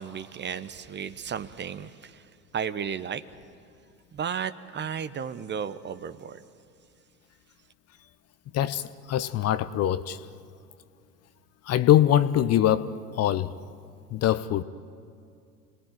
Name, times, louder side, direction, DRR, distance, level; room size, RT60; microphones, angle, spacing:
voice 1, 0.0-2.2 2.5-3.2 4.1-6.4, right 7 dB, 25° right, 0.9 m, -34 dB
voice 2, 9.1-10.2 11.7-12.9 13.1-13.5 14.1-14.6, left 12 dB, 30° left, 0.8 m, -22 dB
30.0 x 19.5 x 9.2 m
hypercardioid pair, 85°, 47 cm